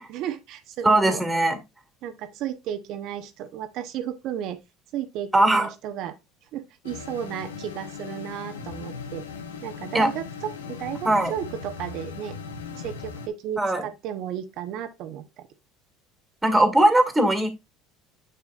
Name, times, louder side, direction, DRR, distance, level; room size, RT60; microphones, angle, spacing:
voice 1, 0.0-1.2 2.0-4.6 4.9-6.2 6.5-9.2 9.6-12.4 12.7-15.5, right 10 dB, 60° right, 0.9 m, -34 dB
voice 2, 0.8-1.6 5.3-5.7 9.9-10.1 11.1-11.3 13.6-13.8 16.4-17.5, right 1 dB, 10° right, 2.0 m, -19 dB
sound 1, 6.8-13.3, left 6 dB, 90° left, 0.9 m, -38 dB
7.2 x 6.5 x 2.4 m
hypercardioid pair, 75°, 0 cm